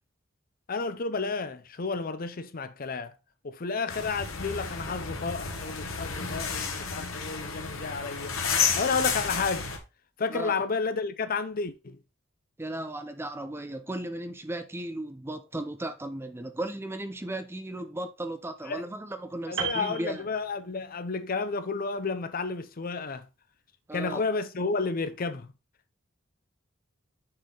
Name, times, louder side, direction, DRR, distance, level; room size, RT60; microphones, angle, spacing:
voice 1, 0.7-3.1 3.4-8.4 8.8-9.7 10.2-12.0 18.7-18.9 19.5-23.3 23.9-25.5, left 4 dB, 45° left, 0.6 m, -31 dB
sound 1, 3.9-9.8, left 6 dB, 90° left, 1.2 m, -31 dB
voice 2, 12.6-20.2 23.9-24.2, right 1 dB, 10° right, 0.5 m, -36 dB
Piano, 19.6-21.0 21.3-21.5, right 7 dB, 65° right, 1.1 m, -35 dB
6.4 x 4.3 x 3.7 m
head